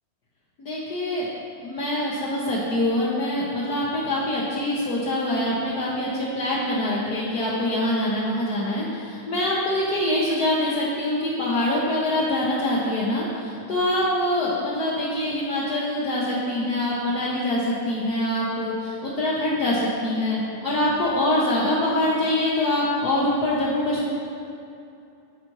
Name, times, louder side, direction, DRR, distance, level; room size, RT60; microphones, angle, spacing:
voice 1, 0.6-1.3 1.6-24.1, left 1 dB, 65° left, -7 dB, 1.4 m, -24 dB
12.5 x 5.0 x 3.0 m, 2.7 s
omnidirectional pair, 1.9 m